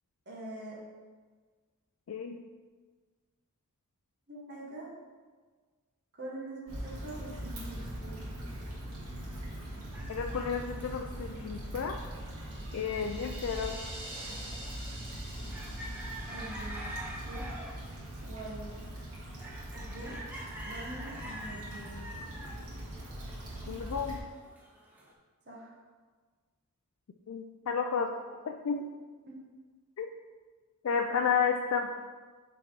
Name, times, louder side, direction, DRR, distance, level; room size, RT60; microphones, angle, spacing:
voice 1, 0.2-0.8 4.3-4.9 6.1-8.3 12.9-13.2 16.3-16.9 17.2-17.4 18.2-18.8 19.7-20.1 20.6-22.1 25.4-25.8 29.3-29.4, right 2 dB, 50° right, -5 dB, 1.3 m, -44 dB
voice 2, 2.1-2.4 10.1-12.0 12.7-13.8 23.7-24.2 27.3-28.9 30.0-30.1 30.8-31.9, left 6 dB, 65° left, 4 dB, 0.4 m, -32 dB
Stream / Traffic noise roadway noise / Trickle dribble, 6.7-24.2, right 1 dB, 85° right, 2.0 m, -41 dB
sound 1, 9.9-13.1 13.5-25.1, right 1 dB, 10° right, 0.8 m, -46 dB
sound 2, 12.1-18.3, right 1 dB, 25° right, 1.0 m, -48 dB
6.1 x 4.4 x 4.6 m, 1.4 s
head